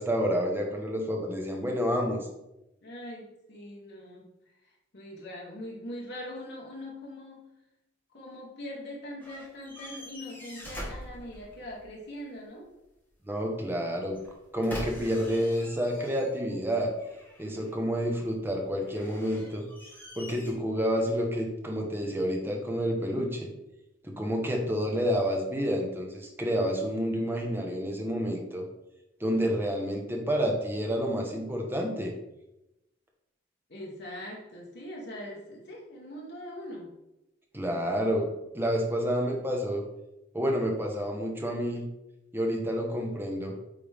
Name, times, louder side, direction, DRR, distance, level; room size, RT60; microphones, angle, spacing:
voice 1, 0.0-2.3 13.2-14.2 14.5-16.9 17.4-19.7 20.2-23.5 24.0-28.6 29.2-32.1 37.5-39.8 40.3-41.9 42.3-43.5, equal, 10° right, 1 dB, 0.9 m, -29 dB
voice 2, 2.8-4.3 4.6-7.5 8.1-12.7 33.7-37.0, left 1 dB, 55° left, -3 dB, 1.2 m, -42 dB
sound 1, 9.2-11.9 14.1-16.6 16.9-17.8 18.8-20.5, left 1 dB, 10° left, 1.4 m, -44 dB
8.7 x 3.5 x 3.5 m, 0.92 s
head